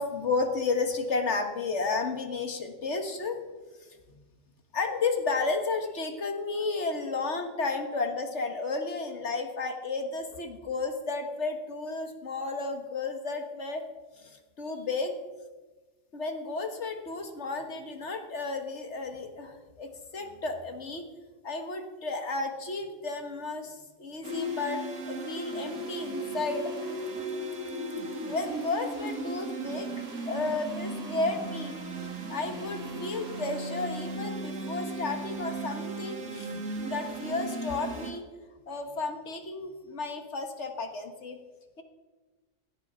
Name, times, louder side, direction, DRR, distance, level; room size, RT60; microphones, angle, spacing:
voice 1, 0.0-3.4 3.8-4.2 4.7-13.8 14.2-15.1 16.1-21.0 21.4-26.9 28.2-29.9 30.3-31.7 32.3-36.5 36.8-38.2 38.7-41.4, left 3 dB, 55° left, 6 dB, 1.7 m, -32 dB
sound 1, 24.2-38.1, right 2 dB, 80° right, 2.3 m, -36 dB
17.0 x 10.5 x 5.6 m, 1.2 s
omnidirectional pair, 1.5 m